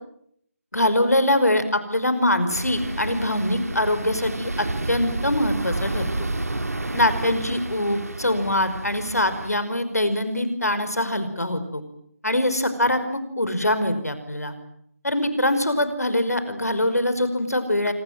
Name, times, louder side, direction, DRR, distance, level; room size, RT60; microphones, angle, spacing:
voice 1, 0.7-6.3 6.9-11.8 12.2-14.5 15.0-17.9, left 1 dB, 85° left, 11 dB, 5.5 m, -23 dB
sound 1, 2.5-9.5, right 2 dB, 75° right, 2.7 m, -30 dB
27.5 x 26.0 x 7.7 m, 0.71 s
figure-of-eight pair, 160°, 8 cm